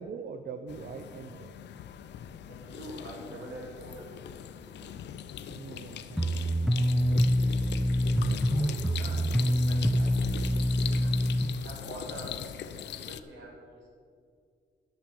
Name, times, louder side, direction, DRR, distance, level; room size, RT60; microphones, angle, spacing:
voice 1, 0.0-1.5 5.5-6.4 7.1-7.3 8.1-8.4, right 5 dB, 55° right, 8 dB, 0.6 m, -43 dB
sound 1, 0.7-13.2, left 10 dB, 75° left, 0.5 m, -41 dB
voice 2, 2.5-4.0 4.6-4.9 8.0-11.2 11.5-14.0, right 1 dB, 85° right, -3 dB, 3.3 m, -46 dB
sound 2, 6.2-11.5, equal, ahead, 0.5 m, -26 dB
8.9 x 7.1 x 7.7 m, 2.1 s
cardioid pair, 100°, 18 cm